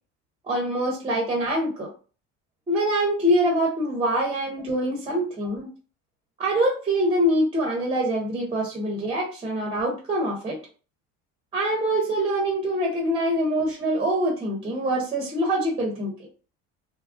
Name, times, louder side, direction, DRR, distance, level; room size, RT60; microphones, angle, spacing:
voice 1, 0.5-1.9 2.7-5.7 6.4-10.6 11.5-16.1, right 1 dB, 15° right, 1 dB, 0.6 m, -24 dB
2.9 x 2.3 x 2.4 m, 0.36 s
cardioid pair, 150°, 31 cm